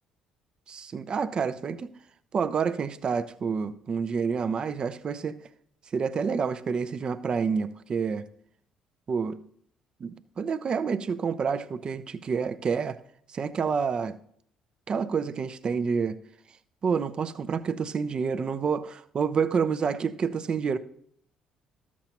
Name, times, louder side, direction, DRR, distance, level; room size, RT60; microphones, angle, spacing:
voice 1, 0.7-1.9 2.3-5.4 5.9-8.2 9.1-9.4 10.0-13.0 13.3-14.1 14.9-16.2 16.8-20.8, right 6 dB, 45° right, 0.6 m, -28 dB
13.5 x 7.3 x 2.9 m
hypercardioid pair, 55°, 2 cm